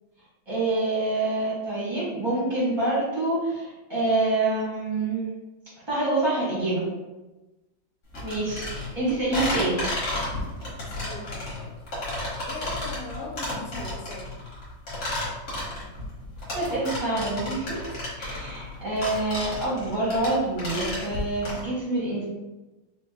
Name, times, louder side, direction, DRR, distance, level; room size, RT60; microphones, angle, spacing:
voice 1, 0.5-5.3 5.9-6.8 8.2-9.8 16.5-17.8 18.2-22.2, right 2 dB, 15° right, -8 dB, 1.1 m, -26 dB
sound 1, 8.1-21.6, left 1 dB, 40° left, 1.2 m, -32 dB
voice 2, 10.8-11.7 12.4-14.2, left 3 dB, 85° left, -2 dB, 1.7 m, -39 dB
4.5 x 2.7 x 2.2 m, 1.1 s
omnidirectional pair, 2.3 m